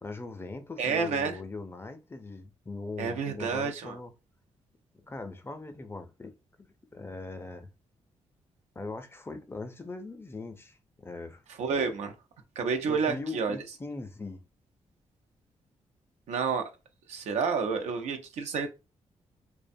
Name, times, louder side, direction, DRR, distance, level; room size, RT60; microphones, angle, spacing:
voice 1, 0.0-4.1 5.0-7.7 8.8-11.4 12.8-14.4, left 3 dB, 20° left, 0.4 m, -40 dB
voice 2, 0.8-1.4 3.0-4.0 11.6-12.1 12.6-13.6 16.3-16.6 17.1-18.7, right 5 dB, 85° right, 0.5 m, -29 dB
2.5 x 2.1 x 2.6 m
cardioid pair, 70°, 11 cm